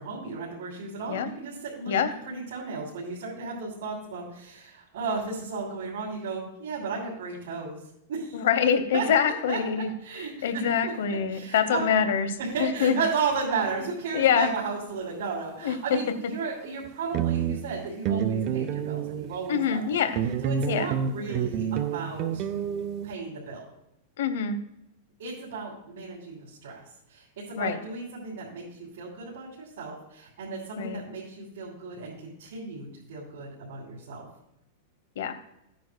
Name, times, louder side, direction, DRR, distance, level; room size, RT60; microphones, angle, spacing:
voice 1, 0.0-1.9 2.3-7.8 8.1-8.4 8.9-11.9 12.4-20.0 20.4-22.4 23.0-23.7 25.2-26.8 27.1-34.2, right 4 dB, 80° right, -6 dB, 3.1 m, -34 dB
voice 2, 8.3-13.0 14.1-14.5 15.6-16.0 19.5-20.2 20.7-20.9 24.2-24.6 27.6-27.8 30.8-31.0 35.2-35.4, left 7 dB, 80° left, 10 dB, 0.9 m, -25 dB
sound 1, 13.6-13.9 16.9-17.0 17.1-19.5 20.2-23.1, right 8 dB, 35° right, 0.5 m, -29 dB
15.0 x 9.2 x 2.2 m, 0.82 s
supercardioid pair, 150°, 0 cm